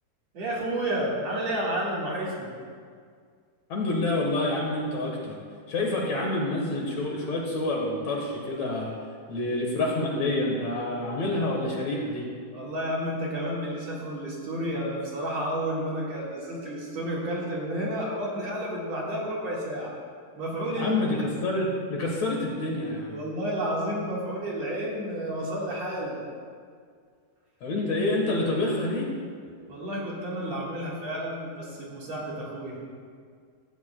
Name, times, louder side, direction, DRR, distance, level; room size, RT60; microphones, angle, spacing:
voice 1, 0.3-2.5 12.5-20.0 20.3-21.2 23.1-26.2 29.7-32.8, right 1 dB, 55° right, -5 dB, 2.8 m, -31 dB
voice 2, 3.7-5.4 5.7-8.9 9.3-12.3 20.7-23.2 27.6-29.1, left 2 dB, 60° left, -1 dB, 2.4 m, -28 dB
16.5 x 14.0 x 2.3 m, 2.1 s
omnidirectional pair, 4.0 m